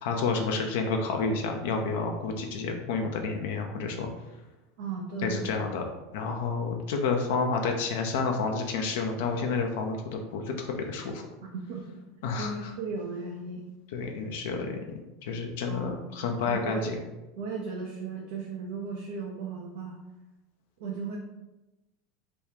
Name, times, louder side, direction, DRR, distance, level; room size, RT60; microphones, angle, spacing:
voice 1, 0.0-4.1 5.2-11.2 12.2-12.7 13.9-14.7 15.2-17.0, left 4 dB, 65° left, 3 dB, 0.4 m, -30 dB
voice 2, 4.8-5.5 11.5-12.0 12.4-13.7 15.7-16.2 16.5-17.0 17.4-20.0 20.8-21.2, right 4 dB, 65° right, -1 dB, 0.5 m, -36 dB
2.9 x 2.2 x 3.5 m, 1.0 s
hypercardioid pair, 85°, 0 cm